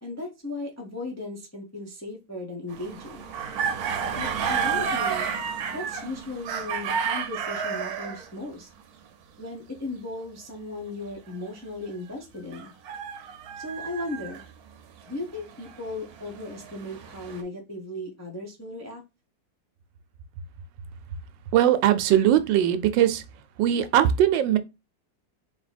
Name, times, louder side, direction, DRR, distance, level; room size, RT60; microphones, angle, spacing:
voice 1, 0.0-3.3 4.1-5.3 5.7-8.7 9.4-12.7 13.6-14.4 15.1-19.0, left 2 dB, 20° left, 0.4 m, -36 dB
sound 1, 2.7-8.3 12.5-14.5 15.3-17.4, right 6 dB, 65° right, 1.1 m, -31 dB
voice 2, 21.5-23.2 23.6-24.6, right 11 dB, 85° right, 1.3 m, -20 dB
3.4 x 3.3 x 4.1 m
omnidirectional pair, 2.0 m